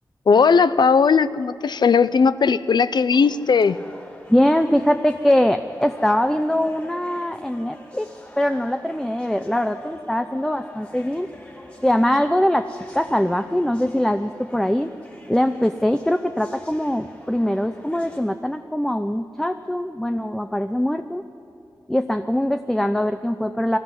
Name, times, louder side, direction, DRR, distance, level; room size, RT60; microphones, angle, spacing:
voice 1, 0.3-3.8, left 5 dB, 70° left, 15 dB, 0.6 m, -17 dB
sound 1, 3.1-18.2, left 1 dB, 20° left, 4.0 m, -44 dB
voice 2, 4.3-8.1 8.4-11.3 11.8-14.9 15.3-21.2 21.9-23.8, left 1 dB, 5° left, 8 dB, 0.6 m, -22 dB
20.5 x 13.0 x 9.8 m, 2.8 s
wide cardioid pair, 100°, 8 cm